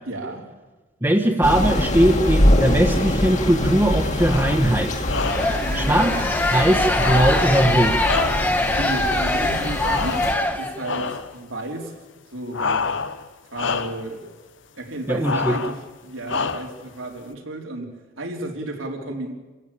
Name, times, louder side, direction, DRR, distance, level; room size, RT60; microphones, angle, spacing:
voice 1, 0.1-0.5 5.6-6.2 8.7-12.0 12.3-12.9 13.5-14.3 14.8-15.8 16.0-17.9 18.2-19.3, right 1 dB, 80° right, 1 dB, 3.9 m, -33 dB
voice 2, 1.0-5.1 5.7-6.1 6.5-8.1 15.1-15.6, right 1 dB, 15° right, 0 dB, 1.4 m, -20 dB
Thunder / Rain, 1.4-10.3, left 1 dB, 40° left, 2.3 m, -23 dB
sound 1, 4.2-4.7 5.0-5.7 6.9-8.7 9.8-10.5 10.8-11.4 12.5-13.3 13.5-14.1 15.2-15.8 16.3-16.9, left 5 dB, 70° left, 1.1 m, -28 dB
sound 2, 5.2-11.1, left 1 dB, 10° left, 1.4 m, -23 dB
27.5 x 15.5 x 8.7 m, 1.2 s
head